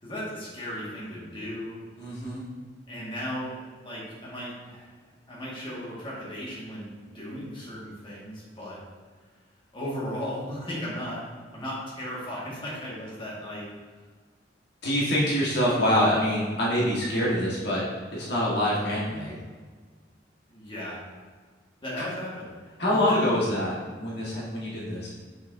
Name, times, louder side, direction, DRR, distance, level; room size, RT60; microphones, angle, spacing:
voice 1, 0.0-1.7 2.9-3.6 3.8-4.9 5.3-8.8 9.7-11.2 11.5-13.7 20.5-21.0 21.8-22.5 22.9-23.2, equal, 30° left, -7 dB, 1.8 m, -36 dB
voice 2, 2.0-2.4 14.8-17.8 18.1-19.3 22.8-25.1, equal, 65° left, -6 dB, 1.5 m, -25 dB
6.2 x 6.0 x 2.7 m, 1.5 s
head